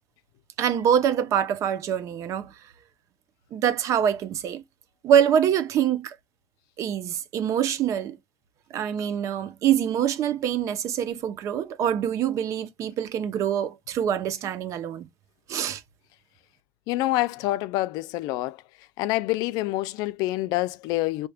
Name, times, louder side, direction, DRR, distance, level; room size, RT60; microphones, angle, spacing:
voice 1, 0.6-2.5 3.5-4.6 5.0-6.2 6.8-8.2 8.7-15.1 15.5-15.8, right 9 dB, 50° right, 0.7 m, -25 dB
voice 2, 16.9-18.6 19.0-21.3, left 17 dB, 85° left, 0.4 m, -26 dB
4.9 x 2.7 x 2.2 m
cardioid pair, 150°, 7 cm